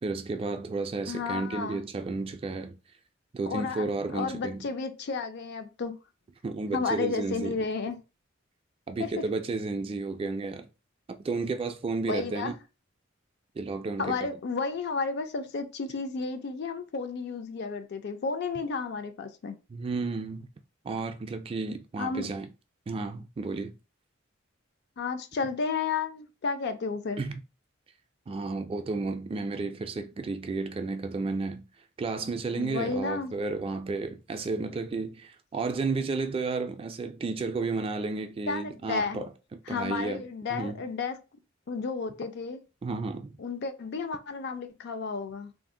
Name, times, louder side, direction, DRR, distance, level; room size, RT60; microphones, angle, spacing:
voice 1, 0.0-2.8 3.3-4.7 6.4-7.6 8.9-10.7 11.2-12.5 13.6-14.3 19.7-20.5 20.8-22.5 22.9-23.7 27.2-27.4 28.3-31.6 32.0-40.2 40.5-40.8 42.8-43.4, right 3 dB, 30° right, 0.3 m, -32 dB
voice 2, 1.1-1.8 3.5-3.9 4.1-6.0 6.7-8.0 9.0-9.2 12.1-12.5 14.0-19.6 22.0-22.3 25.0-27.2 32.5-33.4 38.5-39.2 39.7-41.2 41.7-42.6 43.4-45.5, left 4 dB, 55° left, 0.4 m, -32 dB
2.6 x 2.0 x 3.6 m
head